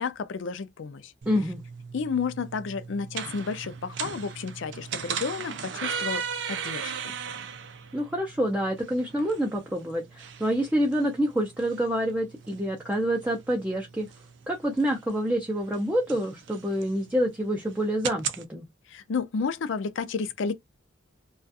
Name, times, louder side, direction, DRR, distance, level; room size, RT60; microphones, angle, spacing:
voice 1, 0.0-1.1 1.9-7.1 18.9-20.5, left 5 dB, 70° left, 0.4 m, -31 dB
sound 1, 1.2-18.4, right 7 dB, 60° right, 0.4 m, -38 dB
voice 2, 1.3-1.6 7.9-14.1 14.5-18.7, equal, 10° right, 0.5 m, -27 dB
2.4 x 2.3 x 2.6 m
head